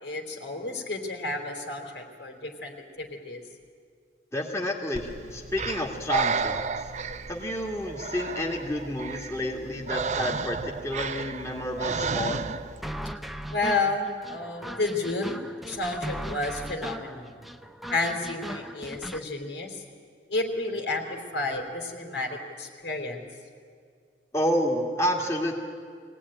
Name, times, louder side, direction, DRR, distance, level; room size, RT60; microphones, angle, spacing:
voice 1, 0.0-3.4 13.5-17.4 17.9-19.8 20.3-23.2, left 2 dB, 75° left, 3 dB, 3.2 m, -31 dB
voice 2, 4.3-6.6 7.3-12.4 24.3-25.6, left 1 dB, 15° left, 0 dB, 2.0 m, -29 dB
Breathing, 4.9-12.8, right 5 dB, 40° right, 0.6 m, -32 dB
sound 1, 12.8-19.2, equal, ahead, 0.6 m, -38 dB
23.0 x 17.5 x 9.9 m, 2.1 s
head